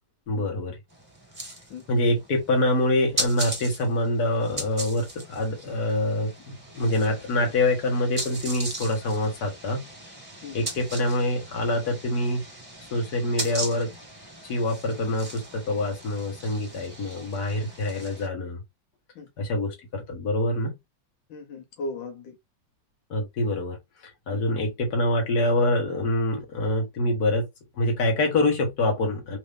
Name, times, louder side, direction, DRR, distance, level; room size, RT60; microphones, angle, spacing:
voice 1, 0.3-0.8 1.9-9.8 10.5-12.4 12.9-13.9 14.4-18.6 19.4-20.8 23.1-27.5 27.8-29.4, left 1 dB, 60° left, 1.9 m, -25 dB
sound 1, 0.9-18.3, right 1 dB, 15° right, 1.4 m, -38 dB
voice 2, 19.2-19.5 21.3-22.4 24.3-24.4, left 2 dB, 85° left, 1.7 m, -37 dB
3.9 x 2.7 x 3.4 m
omnidirectional pair, 2.0 m